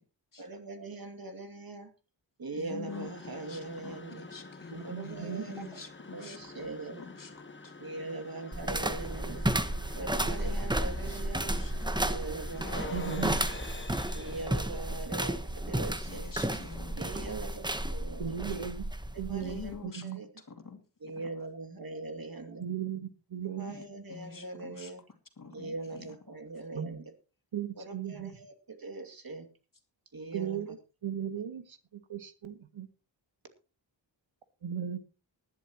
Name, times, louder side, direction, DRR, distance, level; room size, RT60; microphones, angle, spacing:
voice 1, 0.4-1.9 2.4-4.3 4.8-5.8 6.1-7.1 7.8-9.5 9.9-11.6 12.0-13.4 14.1-16.3 16.9-18.4 19.1-19.7 20.0-20.3 21.0-22.6 23.6-25.0 25.5-27.0 27.8-29.5 30.1-30.7, right 2 dB, 50° right, 6 dB, 2.5 m, -41 dB
voice 2, 2.6-6.7 7.0-7.3 7.6-7.7 10.2-10.3 11.0-11.9 12.7-13.0 16.0-17.4 19.4-20.1 20.5-20.8 23.7-23.8 24.1-24.9 25.4-26.1, left 5 dB, 45° left, 6 dB, 2.6 m, -47 dB
sound 1, 2.8-17.8, left 3 dB, 25° left, 1.4 m, -47 dB
voice 3, 4.7-5.7 12.9-13.4 18.2-18.8 19.2-20.2 22.6-23.7 26.7-27.0 27.5-28.3 30.3-30.8 31.0-32.9 34.6-35.0, right 8 dB, 85° right, 10 dB, 1.5 m, -37 dB
sound 2, 8.5-19.8, right 1 dB, 10° right, 1.1 m, -33 dB
19.5 x 11.5 x 3.0 m, 0.32 s
wide cardioid pair, 120°, 46 cm